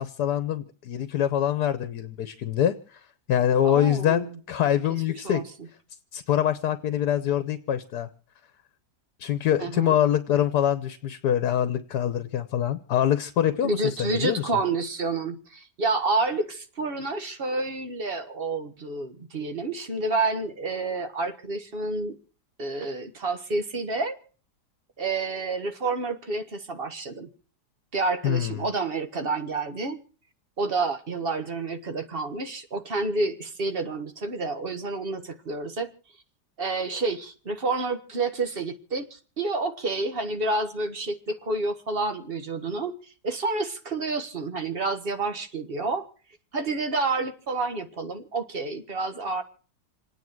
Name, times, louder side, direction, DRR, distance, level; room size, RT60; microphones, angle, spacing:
voice 1, 0.0-3.0 3.3-5.4 6.1-8.1 9.2-14.5 28.2-28.6, left 10 dB, 70° left, 1.5 m, -25 dB
voice 2, 3.6-4.4 4.9-5.0 5.2-5.4 9.6-10.0 13.6-22.2 22.6-24.1 25.0-27.3 27.9-30.0 30.6-35.9 36.6-42.9 43.2-46.1 46.5-49.4, right 3 dB, 35° right, 1.7 m, -29 dB
28.0 x 9.7 x 4.6 m
omnidirectional pair, 1.8 m